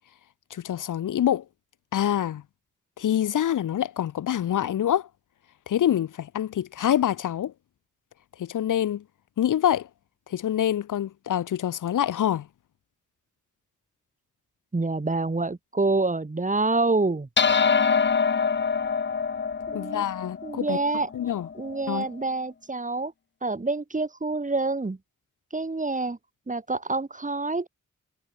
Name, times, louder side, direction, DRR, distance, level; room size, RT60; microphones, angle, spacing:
voice 1, 0.5-1.4 1.9-2.4 3.0-5.1 5.7-7.5 8.4-9.0 9.4-9.9 10.3-12.5 19.7-20.8 21.1-21.5 21.9-22.1, left 10 dB, 75° left, 0.7 m, -26 dB
voice 2, 14.7-17.3 19.7-20.0 20.4-21.1 21.5-23.1 23.4-25.0 25.5-26.2 26.5-27.7, right 3 dB, 25° right, 4.5 m, -27 dB
sound 1, 17.4-22.0, left 5 dB, 35° left, 0.9 m, -25 dB
wide cardioid pair, 135°, 31 cm